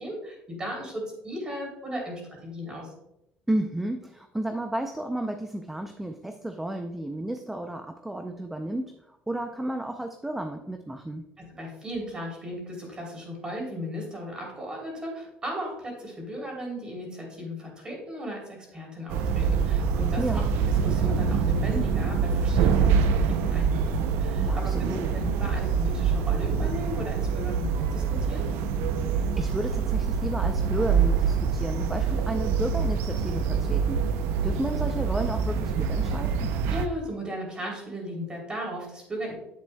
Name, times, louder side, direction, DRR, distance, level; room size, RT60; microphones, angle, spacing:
voice 1, 0.0-2.9 11.5-20.4 20.8-28.4 36.7-39.3, equal, 20° right, 0 dB, 3.2 m, -36 dB
voice 2, 3.5-11.2 20.2-20.5 24.4-25.1 29.1-36.5, right 1 dB, 5° right, 5 dB, 0.5 m, -32 dB
sound 1, 19.1-36.9, right 6 dB, 80° right, 0.5 m, -25 dB
9.6 x 7.8 x 2.3 m, 0.83 s
cardioid pair, 135°, 4 cm